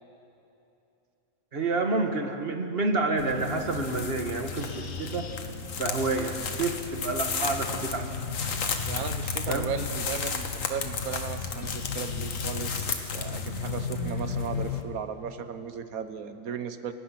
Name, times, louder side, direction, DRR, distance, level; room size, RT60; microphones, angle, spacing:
voice 1, 1.5-5.3 5.8-8.1 9.5-9.7, right 3 dB, 45° right, 5 dB, 1.8 m, -29 dB
sound 1, 3.2-14.8, left 5 dB, 70° left, 1.7 m, -32 dB
voice 2, 8.8-16.9, right 7 dB, 85° right, 10 dB, 1.5 m, -36 dB
30.0 x 15.5 x 6.0 m, 2.8 s
omnidirectional pair, 1.5 m